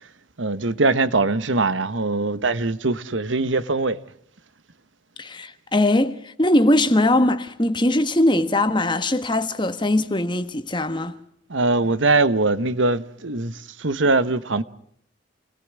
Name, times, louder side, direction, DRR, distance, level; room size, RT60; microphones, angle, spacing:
voice 1, 0.4-4.0 11.5-14.6, right 3 dB, 80° right, 1.4 m, -22 dB
voice 2, 5.2-11.2, left 1 dB, 25° left, 1.5 m, -21 dB
29.0 x 19.0 x 9.6 m
head